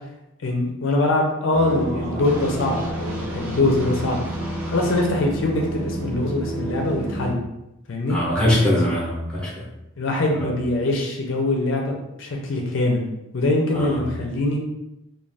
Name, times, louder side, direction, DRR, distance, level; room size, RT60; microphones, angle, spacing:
voice 1, 0.4-4.2 4.7-7.4 7.9-8.2 10.0-13.1 13.3-14.6, left 2 dB, 60° left, 0 dB, 0.4 m, -23 dB
sound 1, 1.5-7.3, right 1 dB, 35° right, 0.7 m, -30 dB
sound 2, 2.2-5.1, right 1 dB, 75° right, 0.8 m, -40 dB
voice 2, 8.1-9.7 10.4-10.5 13.7-14.0, left 1 dB, 5° left, -5 dB, 0.7 m, -22 dB
2.4 x 2.2 x 3.2 m, 0.88 s
head